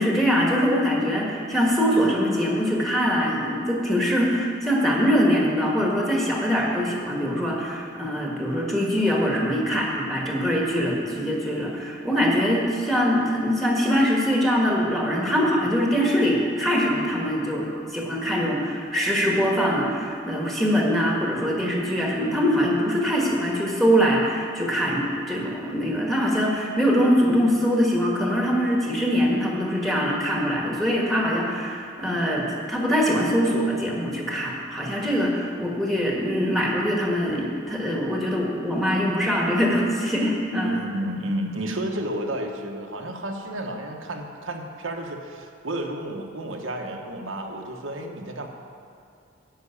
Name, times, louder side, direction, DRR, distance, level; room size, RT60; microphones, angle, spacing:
voice 1, 0.0-40.8, equal, ahead, -3 dB, 1.6 m, -23 dB
voice 2, 40.5-48.5, right 1 dB, 85° right, 2 dB, 1.1 m, -31 dB
10.5 x 6.1 x 8.3 m, 2.4 s
head